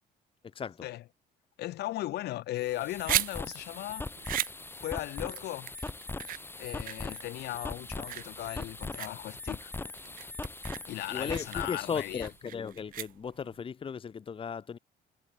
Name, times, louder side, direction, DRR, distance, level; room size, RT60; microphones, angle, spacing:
voice 1, 0.5-0.9 11.1-14.8, left 6 dB, 30° left, 1.2 m, -36 dB
voice 2, 1.6-4.1 4.8-5.7 6.6-9.7 10.9-12.3, left 15 dB, 75° left, 2.8 m, -37 dB
sound 1, 2.6-12.3, left 3 dB, 15° left, 1.1 m, -40 dB
sound 2, 2.7-13.6, right 13 dB, 55° right, 0.6 m, -38 dB
cardioid pair, 110°, 17 cm